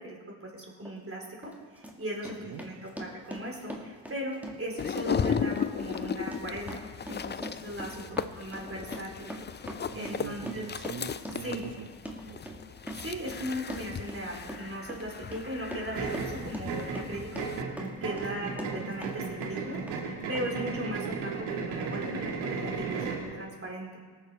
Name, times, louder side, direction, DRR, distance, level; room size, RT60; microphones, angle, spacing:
voice 1, 0.0-6.8 7.1-8.1 8.3-9.7 9.9-10.6 11.4-11.6 13.0-24.0, equal, 30° right, -1 dB, 4.2 m, -38 dB
Run, 0.8-1.0 1.4-19.1 19.4-20.0 20.3-20.4, equal, 5° right, 2.3 m, -43 dB
voice 2, 2.2-2.6 7.9-8.3 9.9-11.9 12.3-12.6 18.1-18.4, right 7 dB, 55° right, 7 dB, 1.0 m, -43 dB
sound 1, 4.8-17.6, left 7 dB, 25° left, 0.5 m, -36 dB
sound 2, 15.9-23.3, right 5 dB, 85° right, 1.7 m, -35 dB
18.5 x 7.4 x 4.6 m, 1.4 s
supercardioid pair, 55°, 47 cm